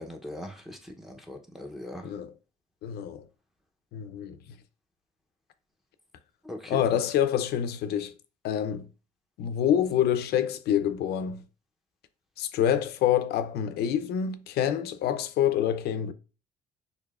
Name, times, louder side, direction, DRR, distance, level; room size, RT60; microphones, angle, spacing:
voice 1, 0.0-2.1 6.4-6.8, left 1 dB, ahead, 0.7 m, -40 dB
voice 2, 2.8-3.2 3.9-4.4 6.7-8.1 8.4-8.9 9.4-11.4 12.4-16.1, left 9 dB, 70° left, 0.6 m, -26 dB
6.5 x 2.7 x 2.4 m
cardioid pair, 110°, 17 cm